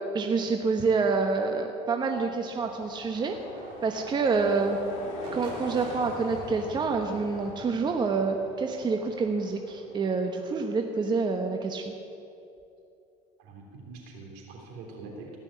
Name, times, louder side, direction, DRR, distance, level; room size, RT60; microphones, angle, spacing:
voice 1, 0.1-3.3 3.8-4.8 5.3-11.9, right 4 dB, 30° right, 4 dB, 1.0 m, -27 dB
sound 1, 2.2-10.7, left 5 dB, 70° left, 2.1 m, -45 dB
sound 2, 2.2-10.0, right 3 dB, 90° right, 2.9 m, -46 dB
voice 2, 13.4-15.4, right 3 dB, 75° right, 0 dB, 3.4 m, -44 dB
17.5 x 6.2 x 8.7 m, 2.7 s
supercardioid pair, 110°, 15 cm